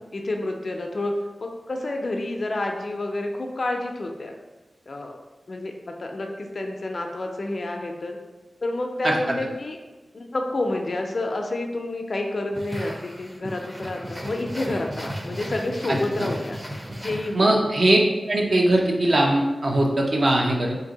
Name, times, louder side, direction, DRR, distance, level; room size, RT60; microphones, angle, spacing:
voice 1, 0.1-1.1 1.4-4.3 4.9-5.2 5.5-8.2 8.6-9.8 10.1-16.6 16.9-17.6, left 2 dB, 55° left, 2 dB, 0.4 m, -29 dB
sound 1, 12.5-17.8, equal, 5° right, 0.5 m, -35 dB
voice 2, 15.9-16.3 17.3-18.0 18.3-20.8, right 1 dB, 60° right, -1 dB, 0.6 m, -20 dB
2.8 x 2.6 x 3.8 m, 1.1 s
wide cardioid pair, 85°, 0 cm